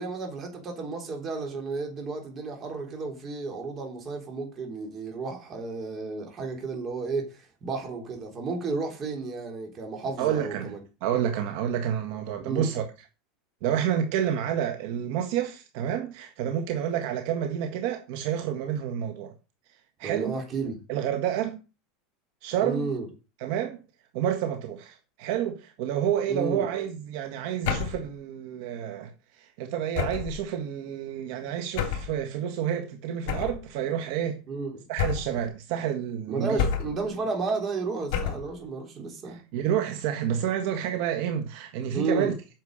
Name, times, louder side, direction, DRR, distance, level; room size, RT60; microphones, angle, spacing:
voice 1, 0.0-10.8 12.5-12.7 20.0-20.8 22.6-23.1 26.3-26.7 34.5-34.8 36.3-39.4 41.9-42.3, right 3 dB, 30° right, 3.7 m, -32 dB
voice 2, 10.2-10.7 11.0-12.8 13.6-19.3 20.0-20.4 20.9-21.6 22.4-22.9 23.4-23.8 24.1-29.1 29.4-34.4 34.9-36.6 39.2-42.3, right 9 dB, 60° right, 1.6 m, -29 dB
sound 1, 27.6-28.1 29.9-30.4 31.8-32.1 33.3-33.6 35.0-35.4 36.6-37.1 38.1-38.5, left 8 dB, 60° left, 3.1 m, -29 dB
9.2 x 6.6 x 6.6 m
supercardioid pair, 150°, 0 cm